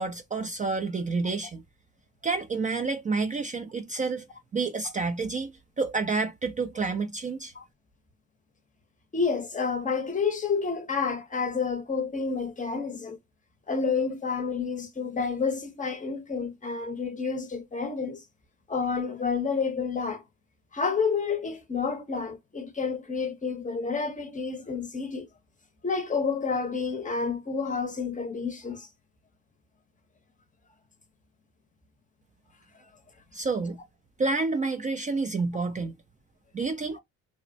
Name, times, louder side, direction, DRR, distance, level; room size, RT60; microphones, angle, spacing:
voice 1, 0.0-1.6 2.2-4.3 4.5-5.5 5.8-7.5 33.3-33.8 34.2-35.9 36.5-37.0, right 4 dB, 25° right, 0.3 m, -29 dB
voice 2, 9.1-13.2 13.7-18.2 18.7-20.2 20.7-25.3 25.8-28.9 36.9-37.0, left 5 dB, 25° left, 0.6 m, -29 dB
3.0 x 2.0 x 2.5 m
cardioid pair, 90°, 30 cm